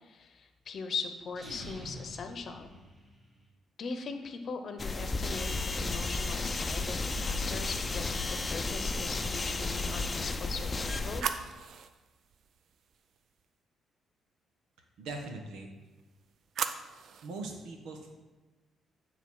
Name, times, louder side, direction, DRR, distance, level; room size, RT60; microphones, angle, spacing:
voice 1, 0.0-2.7 3.8-11.3, left 4 dB, 55° left, 7 dB, 0.8 m, -40 dB
sound 1, 1.3-3.4, equal, 30° right, 2.7 m, -47 dB
sound 2, 4.8-11.2, left 3 dB, 25° left, 0.6 m, -33 dB
sound 3, 10.4-13.4 15.8-17.4, right 7 dB, 65° right, 0.5 m, -40 dB
voice 2, 15.0-15.7 17.2-18.1, right 3 dB, 90° right, 3 dB, 1.2 m, -41 dB
9.2 x 3.9 x 4.8 m, 1.2 s
cardioid pair, 90°, 0 cm